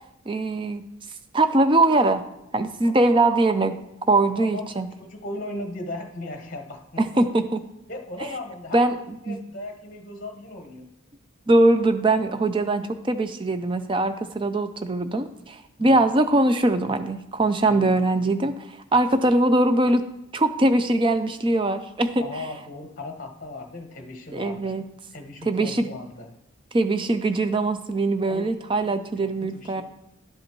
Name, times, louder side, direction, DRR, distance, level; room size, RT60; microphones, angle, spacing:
voice 1, 0.3-0.8 1.3-2.2 2.5-3.7 4.1-4.9 7.0-7.6 8.7-8.9 9.3-9.4 11.5-20.0 20.3-22.2 24.3-24.8 25.5-25.9 26.7-29.8, right 2 dB, 25° right, 9 dB, 0.4 m, -21 dB
voice 2, 4.4-7.4 7.9-8.8 9.2-10.9 15.8-16.0 17.6-18.0 22.2-24.7 25.1-26.3 28.2-28.5 28.8-29.8, left 2 dB, 40° left, 4 dB, 1.0 m, -37 dB
11.5 x 5.2 x 3.0 m, 0.88 s
head